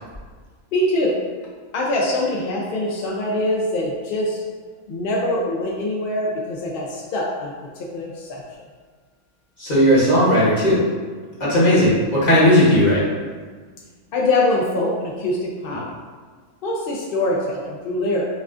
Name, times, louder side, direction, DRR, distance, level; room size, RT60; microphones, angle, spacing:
voice 1, 0.7-1.2 1.7-4.4 4.9-8.4 14.1-15.9 16.6-18.3, left 1 dB, 70° left, -3 dB, 0.5 m, -23 dB
voice 2, 9.6-10.8 11.4-13.0, equal, 35° left, -9 dB, 1.1 m, -16 dB
5.3 x 2.4 x 2.5 m, 1.5 s
omnidirectional pair, 1.5 m